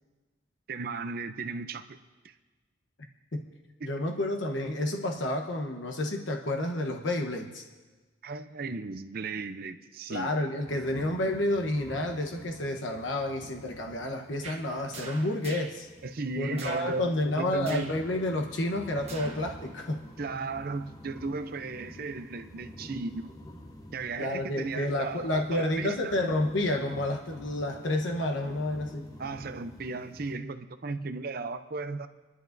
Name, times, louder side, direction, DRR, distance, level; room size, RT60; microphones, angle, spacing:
voice 1, 0.7-2.0 2.2-2.3 8.2-10.3 16.0-17.1 17.4-17.9 20.2-23.3 23.9-26.1 29.2-32.1, right 3 dB, 50° right, 0.5 m, -35 dB
voice 2, 3.8-7.7 10.1-15.9 16.4-20.0 24.2-29.1, left 1 dB, 80° left, 1.0 m, -30 dB
sound 1, 10.7-30.4, left 1 dB, 20° left, 0.9 m, -49 dB
sound 2, 14.4-14.6 14.9-15.8 16.5-16.9 17.6-18.0 19.0-19.5 19.9-20.0, right 4 dB, 35° right, 1.3 m, -42 dB
29.5 x 11.0 x 2.6 m
head